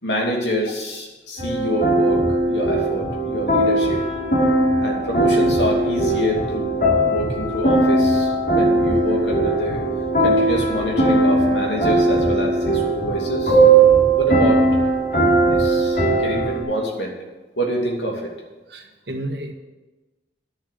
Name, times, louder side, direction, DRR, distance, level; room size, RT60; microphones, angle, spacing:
voice 1, 0.0-4.1 4.8-6.8 7.0-14.6 15.5-17.1 17.6-18.3, equal, 90° left, 0 dB, 2.6 m, -26 dB
sound 1, 1.4-16.6, right 2 dB, 55° left, 3.1 m, -19 dB
voice 2, 18.7-19.5, right 1 dB, 75° right, 4 dB, 1.5 m, -31 dB
10.5 x 7.0 x 7.6 m, 1.2 s
head